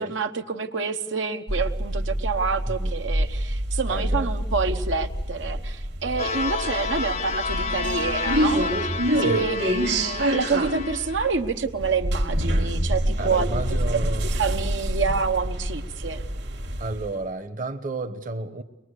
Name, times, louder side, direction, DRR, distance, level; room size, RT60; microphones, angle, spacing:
voice 1, 0.0-13.8 14.4-16.2, right 5 dB, 80° right, 5 dB, 1.1 m, -28 dB
sound 1, 1.5-17.1, right 1 dB, 65° right, 1.8 m, -27 dB
voice 2, 3.9-4.3 9.1-9.5 13.2-14.3 16.8-18.6, right 2 dB, 45° right, 7 dB, 1.1 m, -31 dB
sound 2, 6.2-11.4, left 5 dB, 35° left, 0.7 m, -30 dB
23.5 x 21.0 x 8.3 m, 1.0 s
head